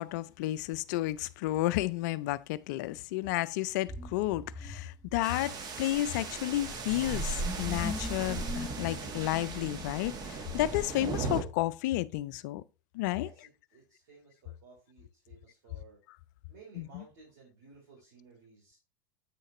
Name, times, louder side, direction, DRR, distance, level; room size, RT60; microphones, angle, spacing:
voice 1, 0.0-12.6 12.9-13.3 16.8-17.0, left 16 dB, 55° left, 0.4 m, -32 dB
sound 1, 3.9-10.9, left 1 dB, 5° left, 0.5 m, -42 dB
sound 2, 5.2-11.4, right 4 dB, 35° right, 1.3 m, -37 dB
voice 2, 13.1-16.0 16.5-18.8, right 4 dB, 65° right, 3.4 m, -56 dB
8.4 x 6.4 x 3.0 m
figure-of-eight pair, 85°, 11 cm